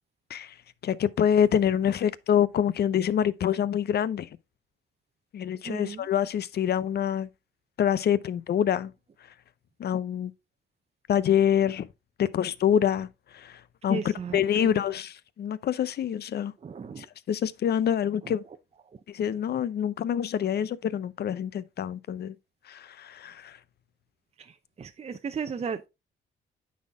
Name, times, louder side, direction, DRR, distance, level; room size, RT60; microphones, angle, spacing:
voice 1, 0.8-4.3 5.3-7.3 7.8-8.9 9.8-10.3 11.1-11.9 12.2-13.1 13.3-14.0 14.3-16.5 17.0-18.4 19.1-22.3 22.7-23.6, left 9 dB, 55° left, 0.6 m, -26 dB
voice 2, 5.6-6.1 13.9-14.7 16.6-17.1 18.2-18.4 24.4-25.9, right 6 dB, 30° right, 0.7 m, -36 dB
9.3 x 4.3 x 3.5 m
cardioid pair, 90°, 20 cm